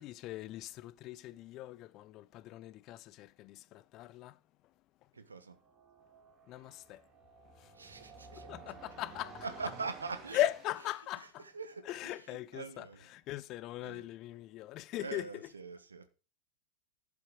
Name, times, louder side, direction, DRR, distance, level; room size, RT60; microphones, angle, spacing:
voice 1, 0.0-4.4 6.5-7.0 7.6-7.9 8.4-9.5 10.3-11.4 11.9-12.9 13.1-15.5, left 14 dB, 35° left, 0.5 m, -39 dB
voice 2, 5.1-5.6 7.7-8.5 9.4-10.5 11.2-13.1 13.8-14.0 15.0-16.1, right 4 dB, 75° right, 1.2 m, -43 dB
sound 1, 5.5-11.0, right 4 dB, 25° right, 3.3 m, -53 dB
11.5 x 7.0 x 4.8 m
figure-of-eight pair, 90°, 0 cm